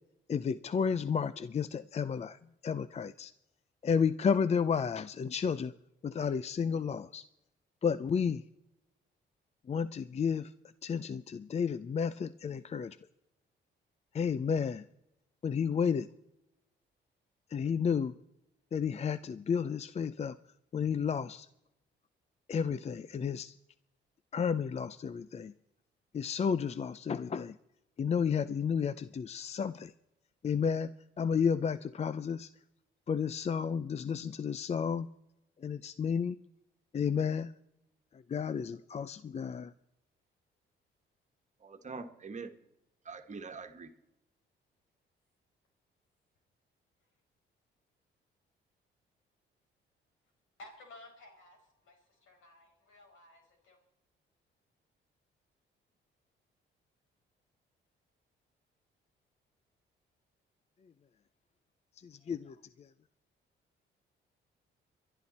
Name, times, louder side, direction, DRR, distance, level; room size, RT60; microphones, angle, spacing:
voice 1, 0.3-3.3 3.8-5.7 6.0-7.2 7.8-8.4 9.7-10.5 10.8-13.0 14.1-14.8 15.4-16.1 17.5-18.1 18.7-20.4 20.7-21.5 22.5-23.5 24.3-25.5 26.1-27.6 28.0-29.9 30.4-32.5 33.1-35.1 35.6-36.4 36.9-37.5 38.3-39.7 62.0-62.9, left 6 dB, 35° left, 0.5 m, -32 dB
voice 2, 41.6-42.5 43.0-43.9, right 4 dB, 35° right, 1.5 m, -44 dB
voice 3, 50.6-53.8, left 2 dB, 80° left, 5.0 m, -55 dB
24.0 x 11.0 x 4.2 m
cardioid pair, 90°, 20 cm